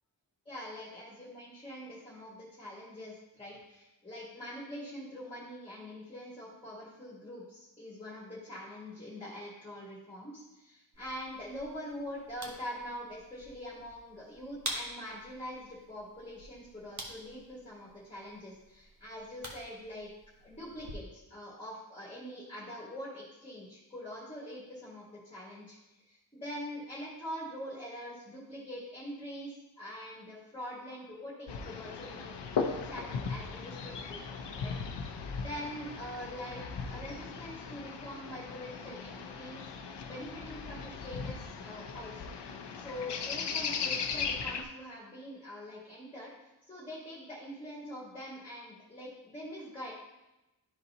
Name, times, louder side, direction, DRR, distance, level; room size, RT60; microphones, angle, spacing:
voice 1, 0.5-20.1 20.4-25.8 26.1-32.4 32.6-39.6 40.0-42.3 42.8-49.9, equal, 15° left, -6 dB, 1.7 m, -44 dB
sound 1, 10.9-20.9, right 1 dB, 40° right, 1.1 m, -47 dB
sound 2, 31.5-44.6, left 5 dB, 85° left, 0.7 m, -38 dB
12.0 x 4.0 x 2.8 m, 0.97 s
wide cardioid pair, 155°, 41 cm